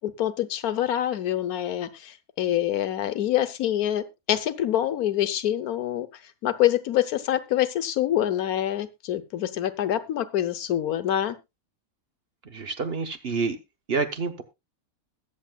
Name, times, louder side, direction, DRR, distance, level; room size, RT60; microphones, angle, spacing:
voice 1, 0.0-6.1 6.4-11.4, left 12 dB, 85° left, 12 dB, 1.4 m, -26 dB
voice 2, 12.5-13.6 13.9-14.4, right 4 dB, 45° right, 8 dB, 1.2 m, -28 dB
21.5 x 7.4 x 2.3 m, 0.23 s
omnidirectional pair, 1.5 m